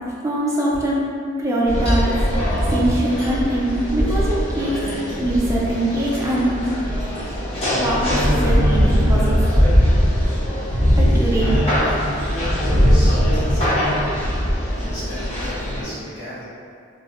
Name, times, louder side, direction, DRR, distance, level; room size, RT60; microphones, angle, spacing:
voice 1, 0.2-1.0 1.4-4.8 5.2-6.5 7.7-9.3 11.0-11.6, right 1 dB, 15° right, -5 dB, 0.3 m, -22 dB
sound 1, 1.7-15.8, equal, 30° left, 0.6 m, -20 dB
voice 2, 12.7-13.2 13.5-14.2 14.7-16.4, equal, 55° left, -12 dB, 1.1 m, -34 dB
2.5 x 2.0 x 2.4 m, 2.4 s
head